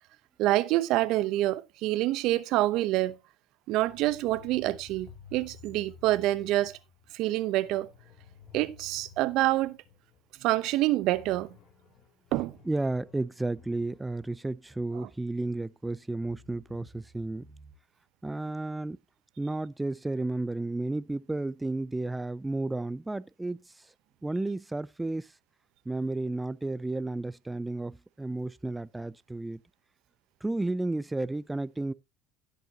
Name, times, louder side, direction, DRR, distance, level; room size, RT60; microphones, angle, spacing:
voice 1, 0.4-3.2 3.7-6.8 7.1-7.9 8.5-9.8 10.4-11.5 12.3-12.6, right 16 dB, 65° right, 0.8 m, -27 dB
sound 1, 3.9-10.3 10.6-10.7 11.0-15.6 16.1-17.7, left 6 dB, 55° left, 3.0 m, -54 dB
voice 2, 12.7-17.5 18.2-19.0 19.4-23.9 24.2-25.4 25.9-29.6 30.4-31.9, right 2 dB, 15° right, 0.5 m, -32 dB
16.0 x 6.8 x 2.9 m
hypercardioid pair, 70°, 0 cm